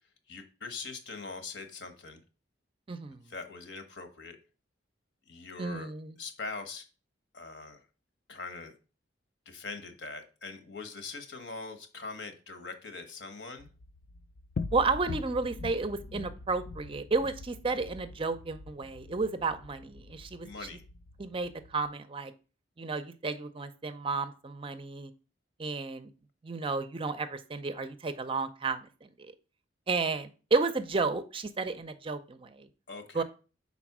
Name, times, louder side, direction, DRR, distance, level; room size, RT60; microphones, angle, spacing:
voice 1, 0.3-2.2 3.1-4.4 5.3-5.9 6.2-6.8 7.3-7.9 8.3-8.7 9.4-13.7 20.4-20.8 32.9-33.2, left 4 dB, 70° left, 7 dB, 1.1 m, -42 dB
voice 2, 2.9-3.2 5.6-6.2 14.7-20.5 21.2-22.3 22.8-25.1 25.6-26.1 26.4-29.1 29.9-32.7 33.1-33.2, right 3 dB, 30° right, 11 dB, 0.5 m, -32 dB
sound 1, 13.6-21.9, left 3 dB, 45° left, 0.4 m, -43 dB
5.1 x 4.1 x 5.9 m, 0.35 s
head